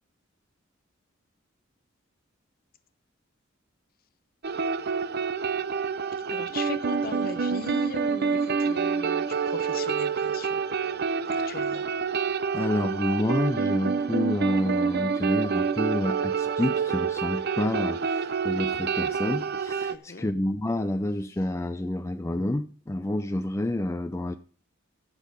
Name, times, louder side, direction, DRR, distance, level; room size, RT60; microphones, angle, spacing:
sound 1, 4.4-19.9, right 5 dB, 50° right, 0.6 m, -27 dB
voice 1, 6.3-10.7 11.3-11.8 19.9-20.3, left 4 dB, 45° left, 0.9 m, -39 dB
voice 2, 12.5-24.4, left 1 dB, 15° left, 0.4 m, -29 dB
13.5 x 6.5 x 5.1 m
head